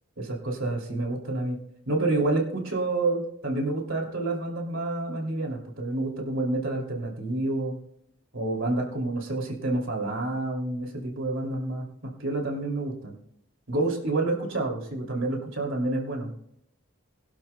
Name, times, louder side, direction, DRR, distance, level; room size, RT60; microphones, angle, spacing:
voice 1, 0.2-1.6 1.9-7.8 8.3-13.1 13.7-16.3, right 2 dB, 70° right, 1 dB, 2.7 m, -28 dB
22.0 x 11.5 x 2.2 m, 0.74 s
head